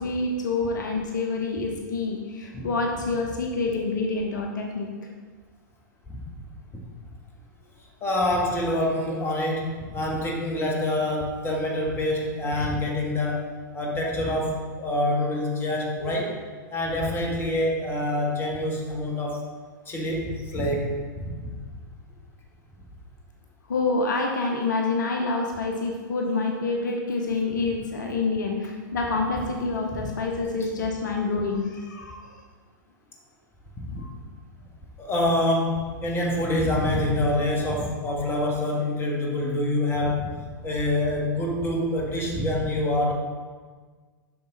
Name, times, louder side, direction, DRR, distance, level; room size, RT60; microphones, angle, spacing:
voice 1, 0.0-4.9 23.7-32.4 34.0-34.1, left 3 dB, 65° left, 2 dB, 0.9 m, -27 dB
voice 2, 8.0-13.5 13.7-16.4 16.7-19.4 19.8-21.5 26.2-26.4 29.9-30.0 33.8-34.0 35.0-40.3 40.6-43.1, left 1 dB, 20° left, -1 dB, 1.5 m, -26 dB
7.4 x 6.0 x 4.0 m, 1.5 s
figure-of-eight pair, 100°, 11 cm